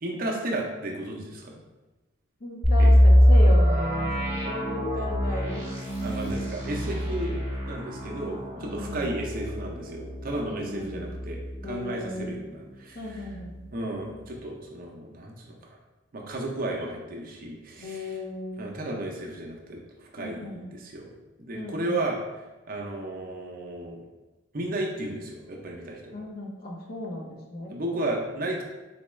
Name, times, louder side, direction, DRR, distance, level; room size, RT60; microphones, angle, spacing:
voice 1, 0.0-1.6 2.8-3.0 6.0-7.4 7.7-13.2 13.7-15.8 16.1-18.2 18.6-21.1 21.4-22.2 22.7-24.0 24.5-26.2 27.7-28.6, right 1 dB, 45° right, -1 dB, 0.5 m, -33 dB
voice 2, 2.4-5.7 8.5-9.1 10.5-11.0 11.6-12.4 12.9-13.6 17.8-18.7 20.2-20.7 21.5-22.0 26.1-27.8, left 1 dB, 45° left, -1 dB, 0.6 m, -35 dB
sound 1, 2.6-12.4 12.7-12.8 13.3-13.6, equal, 15° right, 1.1 m, -23 dB
4.1 x 2.2 x 3.0 m, 1.1 s
head